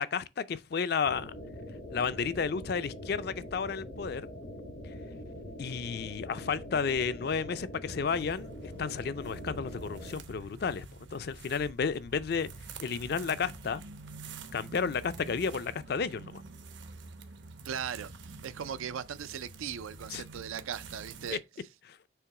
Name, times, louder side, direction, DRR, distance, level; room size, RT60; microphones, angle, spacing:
voice 1, 0.0-1.3 1.9-4.3 5.6-12.5 12.8-13.8 14.5-16.4 20.1-20.2 21.3-21.4 21.9-22.0, left 5 dB, 50° left, 0.4 m, -32 dB
sound 1, 1.0-10.1, left 1 dB, 85° left, 1.7 m, -43 dB
sound 2, 8.0-21.4, right 3 dB, 65° right, 0.8 m, -47 dB
voice 2, 17.6-21.4, right 8 dB, 90° right, 0.4 m, -38 dB
6.8 x 2.9 x 4.7 m
head